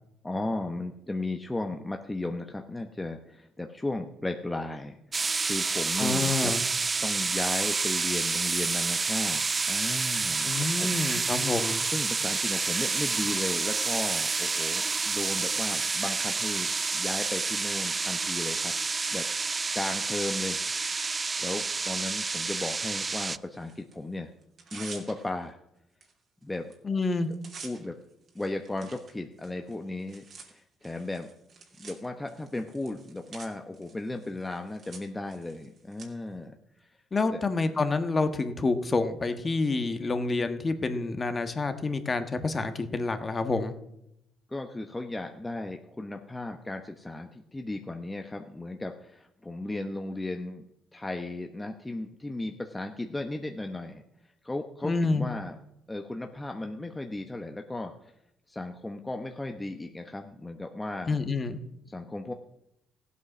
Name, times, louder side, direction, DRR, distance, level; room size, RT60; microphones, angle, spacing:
voice 1, 0.2-6.6 7.0-10.5 10.8-11.3 11.8-18.7 19.1-20.7 21.1-24.3 24.7-25.6 26.4-26.7 27.6-28.0 28.3-31.3 31.8-36.9 37.3-37.4 44.5-50.6 50.9-54.0 54.4-55.6 55.9-57.9 58.5-61.2 61.9-62.3, left 2 dB, 15° left, 4 dB, 1.0 m, -35 dB
sound 1, 5.1-23.4, right 4 dB, 30° right, 0.4 m, -29 dB
voice 2, 6.0-6.6 10.4-11.8 26.8-27.3 37.1-43.7 54.8-55.3 61.1-61.6, left 3 dB, 35° left, 8 dB, 1.4 m, -28 dB
Tearing, 23.3-24.0 24.4-25.5 26.0-26.1 26.4-26.7 27.0-36.1, right 4 dB, 55° right, 2.7 m, -49 dB
15.0 x 8.4 x 6.1 m, 0.82 s
supercardioid pair, 70°, 0 cm